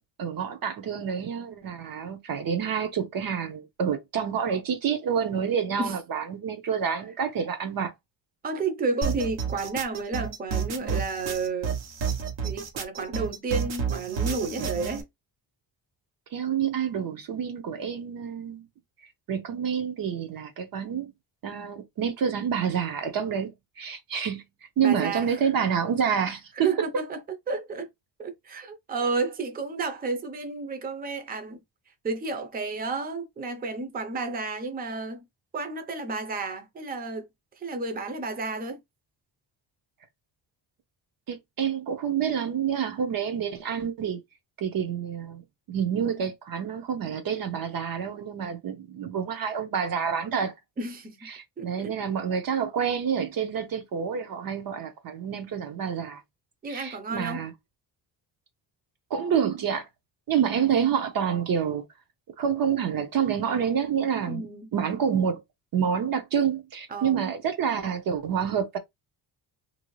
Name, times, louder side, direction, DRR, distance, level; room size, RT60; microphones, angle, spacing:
voice 1, 0.2-7.9 14.6-14.7 16.3-18.7 19.3-21.1 21.4-24.4 24.8-26.7 41.3-44.2 44.6-50.5 51.2-56.2 56.7-57.5 59.1-59.9 60.3-61.8 62.4-65.4 65.7-68.8, right 7 dB, 50° right, 0.7 m, -28 dB
voice 2, 8.4-11.7 12.4-15.1 24.8-25.4 26.6-27.2 27.5-27.9 28.2-31.6 32.0-35.2 35.5-37.3 37.6-38.8 50.8-51.3 51.6-51.9 56.6-57.4 64.3-64.7 66.9-67.2, right 3 dB, 20° right, 0.6 m, -31 dB
sound 1, 9.0-15.0, right 7 dB, 85° right, 1.1 m, -30 dB
2.9 x 2.7 x 3.1 m
cardioid pair, 130°, 44 cm